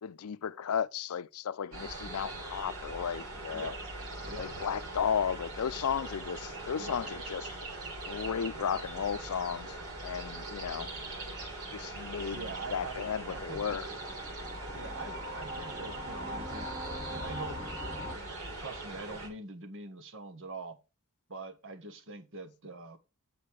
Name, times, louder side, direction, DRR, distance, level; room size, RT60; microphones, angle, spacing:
voice 1, 0.0-3.7 4.4-7.4 8.1-9.8 10.0-10.9 11.7-13.8, left 7 dB, 80° left, 0.5 m, -34 dB
sound 1, 1.7-19.3, right 2 dB, 80° right, 3.4 m, -41 dB
Boom, 4.2-6.0 6.9-7.1, right 1 dB, 40° right, 3.0 m, -54 dB
sound 2, 9.9-18.1, equal, 20° right, 1.6 m, -44 dB
voice 2, 12.3-13.8 14.7-16.7 17.1-20.8 21.3-23.0, right 3 dB, 60° right, 1.4 m, -44 dB
8.6 x 5.3 x 4.8 m
head